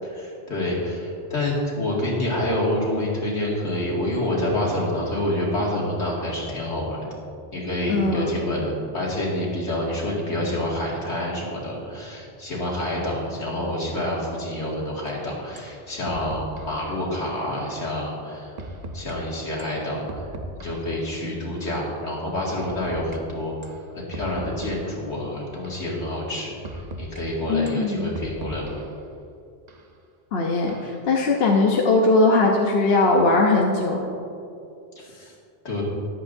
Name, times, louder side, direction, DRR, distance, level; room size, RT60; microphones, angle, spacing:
voice 1, 0.0-7.0 7.5-18.5 18.9-20.3 20.5-23.5 23.9-28.8 35.0-35.3 35.6-35.8, left 1 dB, 90° left, -4 dB, 2.5 m, -27 dB
voice 2, 7.9-8.3 27.5-28.1 30.3-34.1, left 3 dB, 65° left, 0 dB, 1.1 m, -20 dB
sound 1, 15.1-15.2 15.6-15.7 16.1-16.8 17.6-17.8 18.6-19.1 19.6-21.0 21.6-21.8 22.6-23.2 23.6-23.8 24.1-25.0 25.6-25.9 26.6-27.2 27.7-29.0 29.7-29.8 30.7-31.1, right 1 dB, 45° right, 0.8 m, -38 dB
13.5 x 11.0 x 2.7 m, 2.5 s
omnidirectional pair, 1.1 m